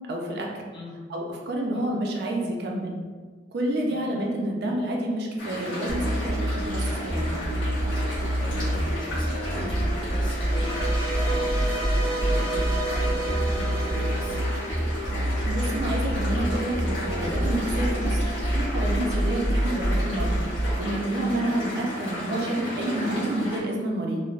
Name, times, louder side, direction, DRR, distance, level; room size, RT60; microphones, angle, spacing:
voice 1, 0.1-0.6 1.1-3.0 3.5-7.3 15.4-20.4 20.8-24.2, right 1 dB, 55° right, 0 dB, 0.4 m, -29 dB
sound 1, 5.4-23.6, equal, 75° left, 1.3 m, -34 dB
sound 2, 5.9-21.0, right 1 dB, 50° left, 1.2 m, -27 dB
voice 2, 8.4-14.5 21.4-21.6, left 1 dB, 25° left, -4 dB, 0.4 m, -41 dB
sound 3, 10.4-15.6, right 2 dB, 15° right, 0.6 m, -32 dB
3.1 x 2.0 x 2.4 m, 1.5 s
head